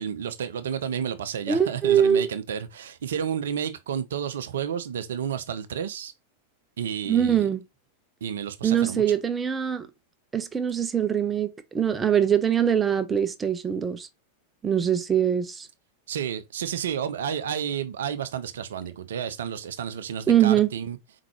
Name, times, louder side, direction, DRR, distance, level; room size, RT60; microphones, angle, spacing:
voice 1, 0.0-6.1 6.8-7.5 8.2-9.0 16.1-21.0, right 8 dB, 60° right, 0.5 m, -31 dB
voice 2, 1.5-2.3 7.1-7.6 8.6-9.9 10.3-14.1 14.6-15.7 20.3-20.7, right 9 dB, 15° right, 0.6 m, -23 dB
4.6 x 3.7 x 3.0 m
figure-of-eight pair, 90°, 0 cm